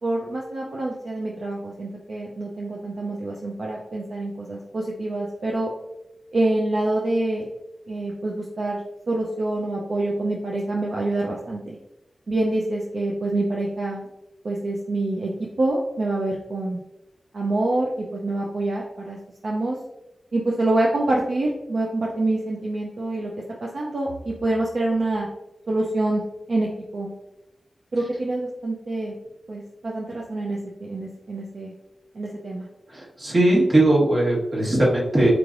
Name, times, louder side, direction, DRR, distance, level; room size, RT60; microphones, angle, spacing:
voice 1, 0.0-5.7 6.3-7.5 7.9-8.8 9.1-11.8 12.3-14.1 14.4-16.8 17.3-19.2 19.4-19.8 20.3-23.3 23.6-25.3 25.7-26.2 26.5-27.1 27.9-29.1 29.5-31.7 32.1-32.7, right 2 dB, 70° right, -3 dB, 0.5 m, -26 dB
voice 2, 32.9-35.3, right 1 dB, 50° right, -4 dB, 1.4 m, -19 dB
4.6 x 3.2 x 2.6 m, 0.89 s
wide cardioid pair, 70°, 0 cm